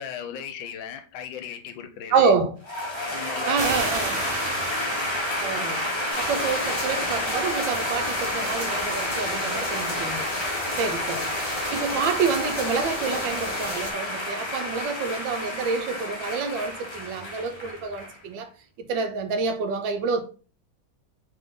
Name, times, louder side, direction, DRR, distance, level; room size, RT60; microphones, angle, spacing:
voice 1, 0.0-2.3 3.1-3.9 11.1-11.3, left 8 dB, 75° left, 1.3 m, -37 dB
voice 2, 2.1-2.5 3.5-4.2 5.4-5.9 6.2-10.3 10.7-18.5 18.8-20.2, right 5 dB, 75° right, 1.2 m, -27 dB
sound 1, 2.6-18.2, left 1 dB, 40° left, 0.4 m, -30 dB
sound 2, 3.6-6.9, right 3 dB, 50° right, 0.8 m, -34 dB
sound 3, 6.1-13.9, left 1 dB, 20° left, 1.3 m, -34 dB
3.7 x 3.4 x 3.5 m
omnidirectional pair, 2.2 m